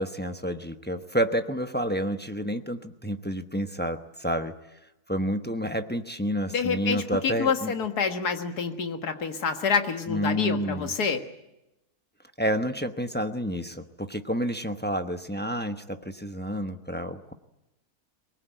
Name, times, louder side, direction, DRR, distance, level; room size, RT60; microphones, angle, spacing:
voice 1, 0.0-4.5 5.1-7.7 10.1-10.9 12.4-17.3, equal, 10° left, 7 dB, 0.8 m, -29 dB
voice 2, 6.5-11.2, left 5 dB, 90° left, 6 dB, 2.2 m, -27 dB
23.5 x 20.5 x 9.1 m, 0.94 s
omnidirectional pair, 1.6 m